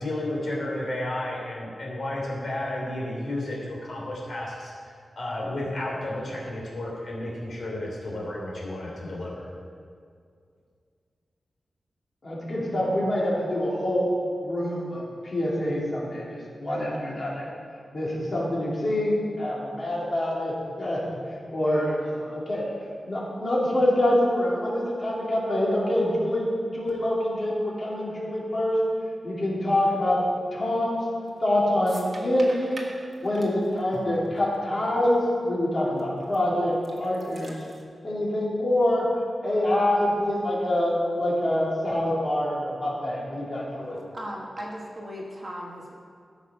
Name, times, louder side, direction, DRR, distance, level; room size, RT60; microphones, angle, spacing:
voice 1, 0.0-4.7 5.2-9.5, left 1 dB, 60° left, -4 dB, 3.1 m, -32 dB
voice 2, 12.2-14.1 14.4-16.3 16.6-17.5 17.9-21.0 21.5-22.7 23.1-28.8 29.2-30.2 30.5-31.0 31.4-32.8 33.2-37.6 38.0-39.0 39.4-44.0, left 1 dB, 40° left, -6 dB, 3.0 m, -25 dB
sound 1, 31.2-31.5 31.8-34.9 35.2-35.3 36.0-36.4 36.7-37.8, right 2 dB, 40° right, 1.4 m, -44 dB
voice 3, 44.1-45.9, equal, 25° right, -1 dB, 1.3 m, -37 dB
14.0 x 6.1 x 5.6 m, 2.2 s
wide cardioid pair, 150°, 0 cm